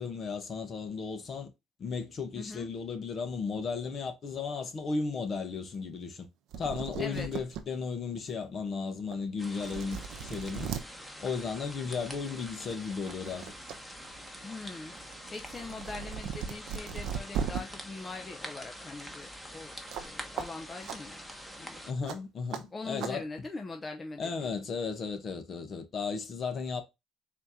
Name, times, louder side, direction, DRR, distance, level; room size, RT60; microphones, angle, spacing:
voice 1, 0.0-1.5 1.8-6.3 6.6-10.7 11.2-13.5 21.9-23.2 24.2-26.8, left 5 dB, 50° left, 1.0 m, -35 dB
voice 2, 2.4-2.7 7.0-7.3 14.4-14.9 15.3-19.7 20.0-21.2 21.6-21.8 22.7-24.5, left 3 dB, 30° left, 0.7 m, -42 dB
sound 1, 6.2-6.3 6.5-7.6 8.2-8.3 9.1-9.2 9.5-10.8 12.1-12.3 12.7-13.8 14.1-17.6 19.9-20.1 20.4-20.5 20.8-21.0 22.1-22.2 22.5-22.6 23.0-23.1, right 7 dB, 75° right, 0.7 m, -37 dB
sound 2, 9.4-21.9, equal, 5° left, 1.2 m, -45 dB
4.3 x 2.8 x 3.6 m
supercardioid pair, 80°, 0 cm